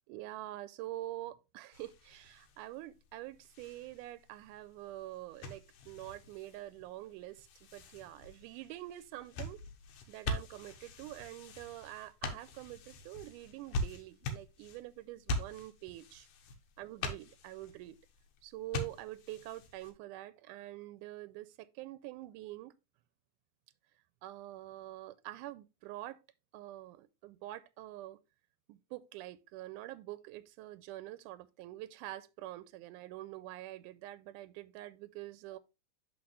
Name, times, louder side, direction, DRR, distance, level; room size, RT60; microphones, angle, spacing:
voice 1, 0.1-7.5 7.7-9.6 10.1-16.3 16.8-18.0 18.4-22.7 24.2-26.2 26.5-28.2 28.7-35.6, right 15 dB, 90° right, 2.1 m, -46 dB
sound 1, 1.7-19.9, left 1 dB, 85° left, 2.6 m, -44 dB
11.5 x 4.0 x 3.2 m
omnidirectional pair, 3.5 m